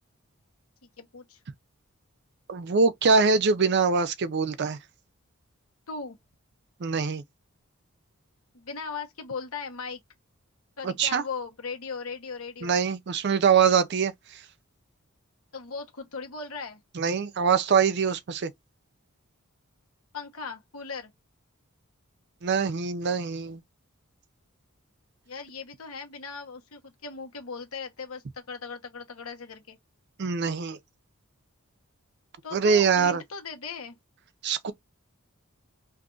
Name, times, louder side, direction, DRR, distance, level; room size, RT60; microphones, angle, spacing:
voice 1, 0.8-1.4 5.9-6.2 8.5-10.0 10.8-12.8 15.5-16.8 20.1-21.1 25.3-29.8 32.4-34.0, left 5 dB, 85° left, 1.1 m, -38 dB
voice 2, 2.5-4.8 6.8-7.2 10.8-11.2 12.6-14.1 17.0-18.5 22.4-23.6 30.2-30.8 32.5-33.2 34.4-34.7, right 5 dB, 50° right, 0.5 m, -23 dB
2.6 x 2.5 x 3.7 m
head